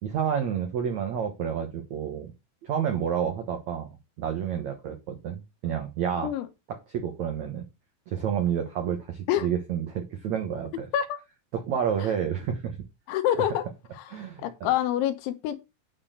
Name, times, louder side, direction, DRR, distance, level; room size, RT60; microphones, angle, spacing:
voice 1, 0.0-2.3 2.6-3.9 4.2-6.3 6.7-7.6 8.1-10.9 11.5-12.9 14.1-14.7, right 8 dB, 80° right, 1.6 m, -29 dB
voice 2, 13.1-13.7 13.9-15.6, left 11 dB, 85° left, 3.5 m, -27 dB
9.6 x 4.4 x 6.7 m
omnidirectional pair, 5.3 m